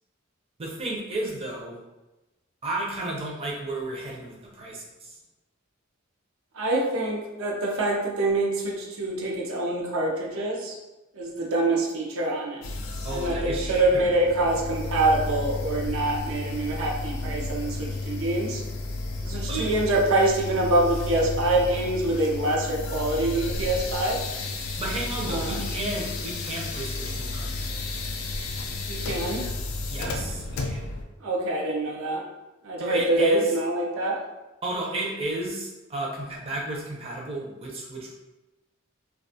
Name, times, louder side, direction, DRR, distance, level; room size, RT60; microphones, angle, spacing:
voice 1, 0.6-1.8 2.6-5.2 13.0-14.1 19.5-19.7 24.8-28.0 29.9-30.8 32.8-33.5 34.6-38.1, right 2 dB, 30° right, -3 dB, 0.5 m, -33 dB
voice 2, 6.6-10.8 11.1-12.6 13.1-18.6 19.2-24.2 25.3-25.7 28.9-29.4 31.2-32.2 32.6-34.2, right 2 dB, 80° right, -1 dB, 0.5 m, -25 dB
sound 1, 12.6-31.0, left 2 dB, 85° left, 0.4 m, -32 dB
2.3 x 2.3 x 2.6 m, 1.0 s
head